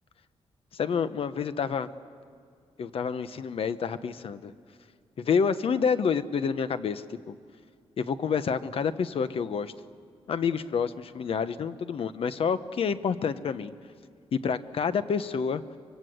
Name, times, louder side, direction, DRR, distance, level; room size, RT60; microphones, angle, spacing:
voice 1, 0.7-1.9 2.8-4.5 5.2-7.3 8.0-9.7 10.3-13.7 14.3-15.6, left 6 dB, 60° left, 12 dB, 1.0 m, -28 dB
25.0 x 24.5 x 7.9 m, 2.2 s
wide cardioid pair, 130°, 11 cm